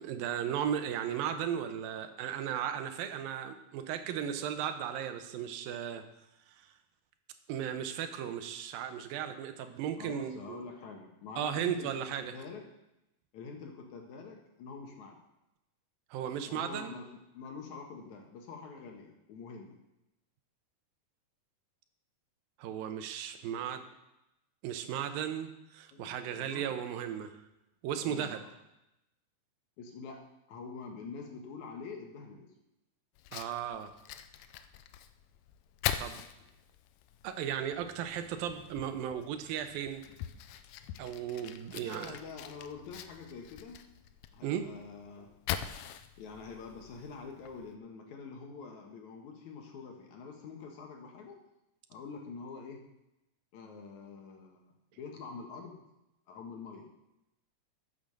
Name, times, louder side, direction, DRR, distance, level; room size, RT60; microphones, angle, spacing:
voice 1, 0.0-6.0 7.5-10.6 11.4-12.3 16.1-16.9 22.6-23.8 24.6-27.3 27.8-28.5 33.3-33.9 36.0-36.2 37.2-40.0 41.0-42.2 44.4-44.7, right 9 dB, 85° right, 8 dB, 2.6 m, -36 dB
voice 2, 10.0-11.9 12.2-12.7 13.3-15.2 16.5-19.8 25.9-26.7 28.0-28.5 29.8-32.5 41.7-43.9 44.3-45.3 46.2-51.4 51.9-52.8 53.5-55.8 56.3-56.9, left 5 dB, 65° left, 2 dB, 2.3 m, -46 dB
Fire, 33.2-47.8, left 10 dB, 80° left, 2.1 m, -43 dB
10.0 x 7.1 x 6.5 m, 0.90 s
omnidirectional pair, 4.1 m